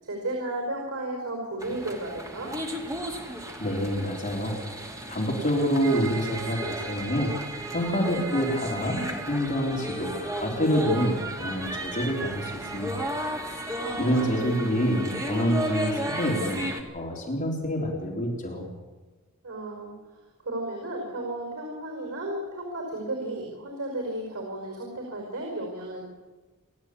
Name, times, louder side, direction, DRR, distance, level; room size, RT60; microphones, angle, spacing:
voice 1, 0.0-2.5 13.8-14.5 19.4-19.9 20.4-26.1, right 1 dB, 85° right, 1 dB, 5.4 m, -34 dB
sound 1, 1.6-16.8, right 1 dB, 15° right, 2.6 m, -34 dB
voice 2, 3.6-4.6 5.1-7.3 7.7-13.1 14.0-16.7 16.9-18.7, equal, 35° left, -1 dB, 4.0 m, -27 dB
28.5 x 13.0 x 8.6 m, 1.3 s
head